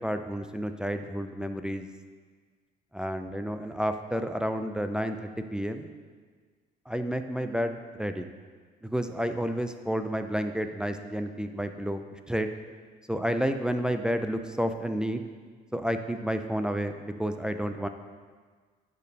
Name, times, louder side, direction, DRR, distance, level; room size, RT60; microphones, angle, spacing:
voice 1, 0.0-1.9 2.9-5.9 6.9-8.3 8.8-12.5 13.1-15.2 15.7-17.9, equal, 5° right, 7 dB, 0.4 m, -30 dB
6.8 x 5.2 x 6.5 m, 1.5 s
cardioid pair, 110°, 17 cm